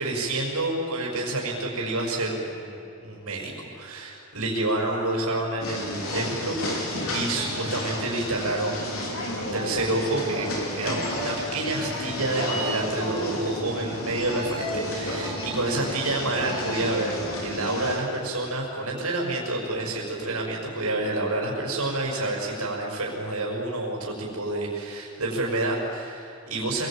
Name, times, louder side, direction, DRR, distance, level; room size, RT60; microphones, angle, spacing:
voice 1, 0.0-2.8 3.0-8.9 9.2-10.5 10.8-17.2 17.4-26.9, right 2 dB, 90° right, -2 dB, 6.2 m, -28 dB
sound 1, 5.6-18.0, left 1 dB, 70° left, 4.8 m, -31 dB
27.5 x 21.5 x 9.1 m, 2.9 s
head